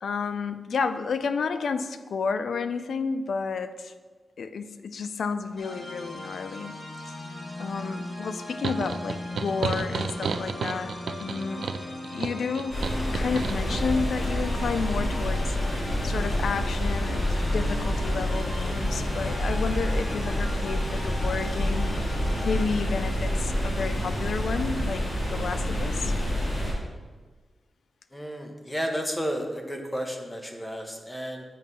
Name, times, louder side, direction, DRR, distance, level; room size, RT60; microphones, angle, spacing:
voice 1, 0.0-3.9 4.4-7.1 7.6-10.9 11.2-11.7 12.1-12.8 13.1-26.1, left 5 dB, 80° left, 10 dB, 0.4 m, -31 dB
sound 1, 5.6-22.6, left 1 dB, 40° left, 1.1 m, -39 dB
sound 2, 8.6-13.9, right 5 dB, 80° right, 0.3 m, -32 dB
sound 3, 12.7-26.7, equal, 25° left, 2.3 m, -28 dB
voice 2, 28.1-31.4, equal, 5° left, 2 dB, 0.8 m, -32 dB
8.5 x 3.1 x 5.4 m, 1.4 s
wide cardioid pair, 160°, 0 cm